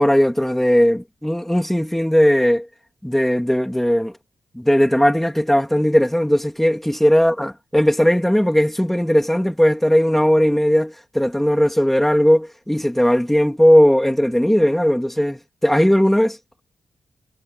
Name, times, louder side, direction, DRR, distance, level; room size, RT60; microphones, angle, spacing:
voice 1, 0.0-2.7 3.0-4.1 4.5-16.4, equal, 5° left, 2.6 m, -17 dB
wide cardioid pair, 160°, 7 cm